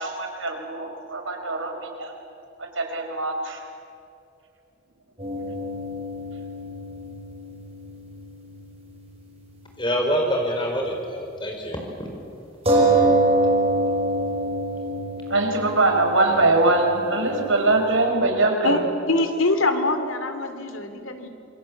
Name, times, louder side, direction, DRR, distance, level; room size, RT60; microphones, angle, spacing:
voice 1, 0.0-2.1 2.6-3.6 15.3-18.8, right 2 dB, 75° right, 4 dB, 4.6 m, -22 dB
sound 1, 5.2-9.1 9.3-9.4 12.7-17.9, right 2 dB, 30° right, 5.6 m, -25 dB
voice 2, 9.8-12.1, equal, 25° left, 1 dB, 4.7 m, -26 dB
voice 3, 19.1-21.3, left 2 dB, 85° left, 8 dB, 2.9 m, -24 dB
27.0 x 24.0 x 8.5 m, 2.7 s
head